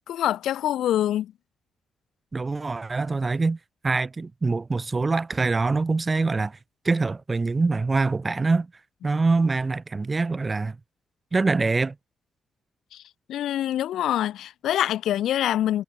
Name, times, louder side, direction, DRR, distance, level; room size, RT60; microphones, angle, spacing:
voice 1, 0.0-1.3 12.9-13.0 13.3-15.8, left 12 dB, 90° left, 0.4 m, -25 dB
voice 2, 2.3-3.6 3.8-6.6 6.8-8.7 9.0-10.8 11.3-12.0, right 3 dB, 25° right, 1.8 m, -24 dB
cardioid pair, 105°, 0 cm